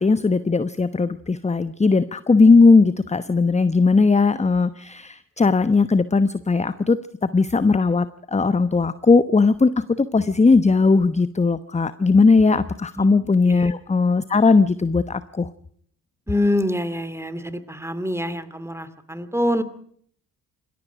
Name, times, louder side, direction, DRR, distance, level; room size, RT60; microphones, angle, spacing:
voice 1, 0.0-8.1 8.3-15.5, left 4 dB, 15° left, 14 dB, 1.0 m, -18 dB
voice 2, 16.3-19.6, left 1 dB, 5° right, 13 dB, 2.6 m, -25 dB
27.0 x 21.0 x 4.9 m, 0.62 s
figure-of-eight pair, 40°, 49 cm